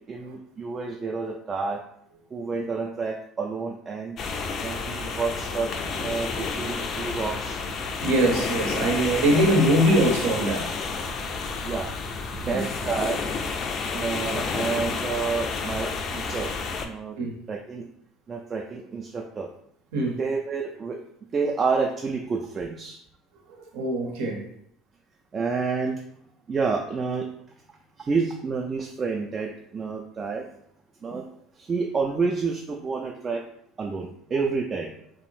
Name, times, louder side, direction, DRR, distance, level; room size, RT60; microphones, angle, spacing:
voice 1, 0.0-1.8 2.3-4.2 4.6-7.6 9.3-9.4 11.6-11.9 12.3-13.2 13.9-17.2 17.5-17.9 18.3-19.5 20.2-21.0 21.3-23.0 25.3-26.0 26.5-27.3 27.7-30.4 31.0-31.3 31.6-33.4 33.8-34.9, right 4 dB, 35° right, 0.3 m, -29 dB
sound 1, 4.2-16.9, left 4 dB, 50° left, 0.3 m, -30 dB
voice 2, 8.0-10.8 12.4-12.6 17.2-17.3 19.9-20.2 23.5-24.5 31.1-31.2, right 1 dB, 80° right, 0.7 m, -23 dB
2.6 x 2.0 x 3.0 m
supercardioid pair, 90°, 0 cm